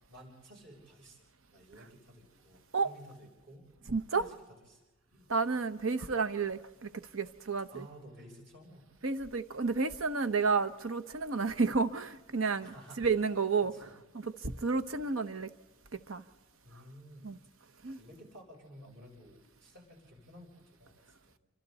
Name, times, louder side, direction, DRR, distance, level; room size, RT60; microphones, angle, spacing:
voice 1, 0.1-1.2 1.5-3.6 4.1-4.3 4.7-4.8 5.1-5.4 7.7-8.9 12.6-13.1 13.6-14.0 14.9-15.1 16.6-17.3 18.0-21.0 21.3-21.4, equal, 60° right, 7.6 m, -53 dB
voice 2, 3.9-4.3 5.3-7.9 9.0-13.7 14.2-15.5 15.9-16.2 17.2-17.4 17.8-18.0, right 4 dB, 90° right, 1.0 m, -31 dB
28.0 x 25.0 x 4.2 m
head